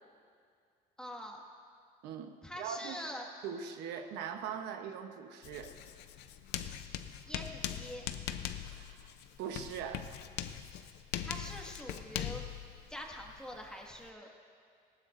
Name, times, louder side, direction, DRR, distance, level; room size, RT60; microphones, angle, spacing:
voice 1, 1.0-1.4 2.4-3.3 7.3-8.1 11.2-12.4 12.9-14.3, equal, 5° left, 0 dB, 1.9 m, -44 dB
voice 2, 2.0-3.0 3.4-5.7 8.7-9.1 9.4-10.1, right 7 dB, 85° right, 5 dB, 1.0 m, -41 dB
Writing, 5.4-14.1, left 11 dB, 85° left, 0.7 m, -41 dB
19.0 x 16.0 x 2.6 m, 2.3 s
cardioid pair, 110°, 17 cm